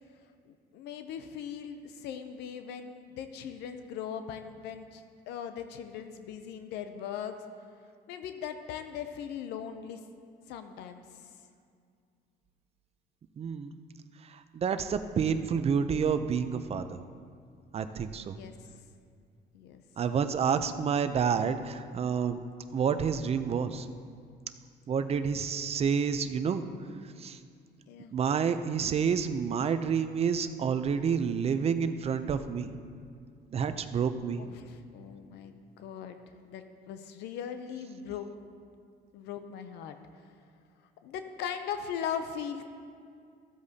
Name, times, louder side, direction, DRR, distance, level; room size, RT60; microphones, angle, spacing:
voice 1, 0.5-7.3 8.1-10.0 10.5-11.0 18.3-18.5 19.5-19.8 27.9-28.1 34.4-38.3 39.1-40.0 41.0-42.6, left 8 dB, 85° left, 8 dB, 0.6 m, -39 dB
voice 2, 13.4-13.7 14.2-17.0 17.7-18.4 20.0-22.4 22.7-23.9 24.9-26.7 27.2-27.4 28.1-32.7 33.5-34.5, right 6 dB, 35° right, 10 dB, 0.5 m, -29 dB
14.5 x 7.9 x 2.8 m, 2.3 s
cardioid pair, 110°, 17 cm